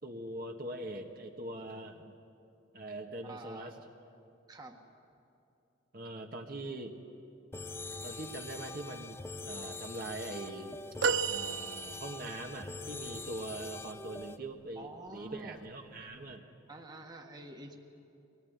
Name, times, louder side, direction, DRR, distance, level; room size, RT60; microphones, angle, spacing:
voice 1, 0.0-2.1 2.7-3.7 5.9-7.0 8.0-9.2 9.4-10.7 11.3-16.4, right 2 dB, 50° right, 2 dB, 1.6 m, -42 dB
voice 2, 3.2-3.7 4.5-4.8 14.7-15.6 16.7-17.8, right 2 dB, 20° right, 2 dB, 1.7 m, -47 dB
sound 1, 7.5-14.4, left 3 dB, 10° left, 0.5 m, -43 dB
sound 2, 11.0-12.4 13.2-13.3, right 5 dB, 70° right, 0.6 m, -32 dB
25.0 x 19.0 x 9.6 m, 2.6 s
head